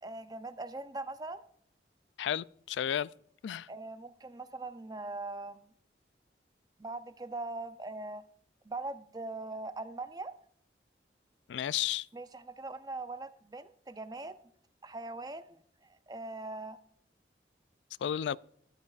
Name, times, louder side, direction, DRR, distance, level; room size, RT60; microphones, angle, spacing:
voice 1, 0.0-1.4 3.7-5.7 6.8-8.2 8.7-10.3 12.1-14.4 14.8-16.8, right 2 dB, 20° right, 0.5 m, -41 dB
voice 2, 2.2-3.1 3.4-3.7 11.5-12.1 18.0-18.4, left 10 dB, 85° left, 0.3 m, -32 dB
13.5 x 12.0 x 2.4 m
head